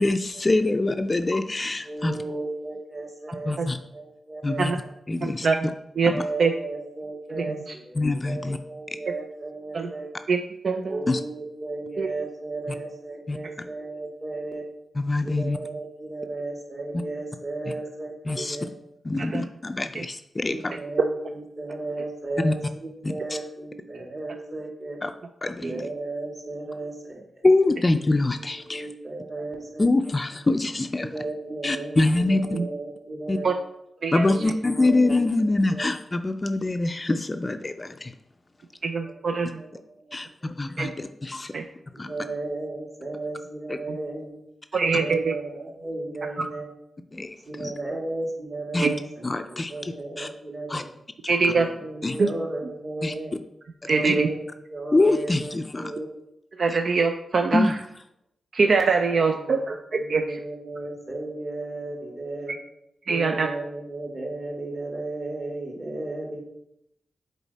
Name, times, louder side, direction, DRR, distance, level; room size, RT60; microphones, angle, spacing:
voice 1, 0.0-2.2 3.5-3.8 4.4-4.7 5.1-5.5 6.0-6.2 8.0-8.6 11.1-11.2 13.3-13.4 15.0-15.6 18.3-18.6 19.0-20.7 22.4-22.5 23.0-23.4 25.0-25.1 25.4-25.9 27.4-28.9 29.8-31.1 31.6-32.6 33.3-33.4 34.1-38.1 40.1-41.5 42.0-42.1 43.7-43.8 47.1-47.7 48.7-48.9 49.2-50.3 50.7-50.8 51.2-51.4 52.0-52.2 53.0-53.1 54.0-54.1 54.9-55.9 56.7-56.8 57.5-57.7, left 2 dB, 30° left, 8 dB, 0.4 m, -24 dB
voice 2, 1.8-3.6 3.9-4.9 6.1-10.1 10.9-14.6 15.2-18.7 20.5-25.0 25.7-27.2 28.4-29.9 31.0-33.5 34.2-35.8 39.0-39.2 39.5-40.2 40.4-41.0 41.9-44.4 44.9-46.7 47.5-50.8 51.4-53.4 53.8-54.4 54.7-56.1 59.3-59.6 60.0-62.5 63.1-66.4, right 2 dB, 40° right, -2 dB, 2.3 m, -35 dB
voice 3, 5.2-5.7 6.0-6.1 6.4-6.5 7.3-7.6 9.7-9.9 10.3-10.4 10.6-11.0 12.0-12.1 19.2-19.4 19.9-20.0 21.0-21.1 25.6-25.8 32.5-32.7 33.4-33.5 34.0-34.3 38.8-39.6 40.8-40.9 41.5-41.6 43.9-44.0 44.7-45.3 46.4-46.5 48.8-48.9 51.3-51.7 52.2-52.3 53.8-54.3 56.6-57.7 58.5-60.2 63.1-63.5, right 4 dB, 65° right, 5 dB, 0.5 m, -23 dB
7.1 x 4.1 x 4.1 m, 0.80 s
cardioid pair, 80°, 0 cm